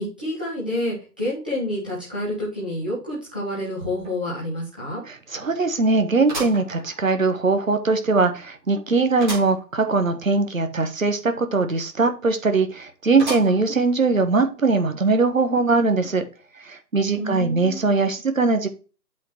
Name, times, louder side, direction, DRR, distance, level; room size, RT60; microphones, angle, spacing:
voice 1, 0.0-5.0 17.0-17.8, left 1 dB, 5° right, -9 dB, 1.0 m, -28 dB
sound 1, 4.0-4.1 4.6-4.7 6.3-7.4 7.9-8.0 9.2-9.6 10.0-10.1 10.3-10.4 13.2-13.8 14.4-14.5 15.5-15.6, right 2 dB, 30° right, 3.9 m, -34 dB
voice 2, 5.1-16.2 16.6-18.7, right 3 dB, 55° right, 8 dB, 1.4 m, -21 dB
8.0 x 4.5 x 4.3 m, 0.34 s
figure-of-eight pair, 155°, 49 cm